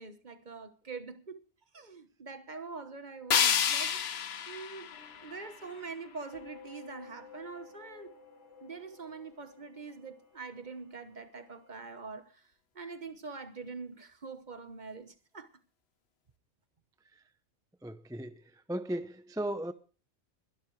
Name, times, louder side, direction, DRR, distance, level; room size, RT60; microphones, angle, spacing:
voice 1, 0.0-1.4 1.7-8.2 8.6-15.5, right 4 dB, 40° right, 1.2 m, -44 dB
sound 1, 3.3-6.3, left 8 dB, 55° left, 1.0 m, -30 dB
sound 2, 4.9-11.8, left 6 dB, 75° left, 3.9 m, -55 dB
voice 2, 17.8-19.7, right 1 dB, 5° right, 0.5 m, -36 dB
21.5 x 12.5 x 3.2 m
omnidirectional pair, 1.3 m